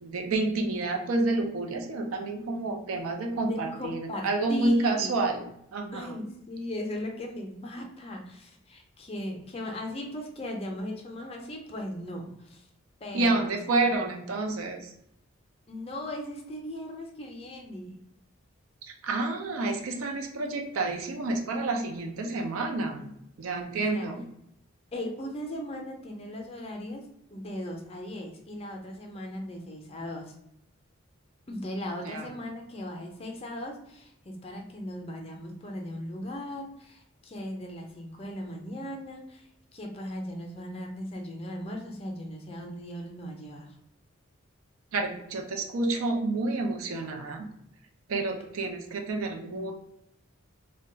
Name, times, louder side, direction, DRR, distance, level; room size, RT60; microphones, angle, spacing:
voice 1, 0.0-5.4 5.7-6.2 13.1-14.9 18.8-23.0 23.4-24.2 32.1-32.3 44.9-47.4 48.1-49.7, right 2 dB, 90° right, 2 dB, 0.5 m, -29 dB
voice 2, 3.4-5.2 5.9-12.7 13.0-13.4 13.9-14.0 15.7-18.0 23.0-24.1 24.9-27.0 27.3-30.3 31.5-43.7, left 1 dB, 30° left, 1 dB, 0.5 m, -38 dB
2.3 x 2.2 x 3.7 m, 0.77 s
head